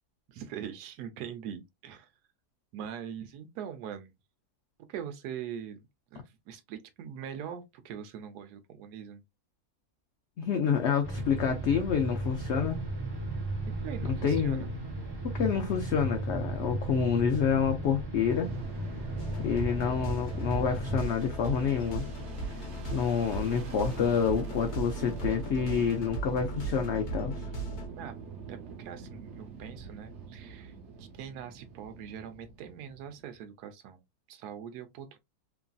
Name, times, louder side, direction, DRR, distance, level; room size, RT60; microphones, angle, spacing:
voice 1, 0.3-2.1 2.7-4.1 4.9-5.8 6.1-9.2 13.8-14.7 27.9-28.2 28.5-34.0 34.3-35.2, right 8 dB, 85° right, 1.1 m, -42 dB
voice 2, 10.4-12.8 14.2-14.6 15.3-18.5 19.4-22.1 22.5-27.5, left 7 dB, 75° left, 0.6 m, -28 dB
sound 1, 11.0-21.0, right 1 dB, 20° right, 0.8 m, -35 dB
Fixed-wing aircraft airplane, 18.3-33.5, right 5 dB, 55° right, 1.0 m, -45 dB
sound 2, 19.2-27.9, right 2 dB, 55° left, 1.0 m, -37 dB
3.0 x 2.5 x 2.2 m
omnidirectional pair, 1.7 m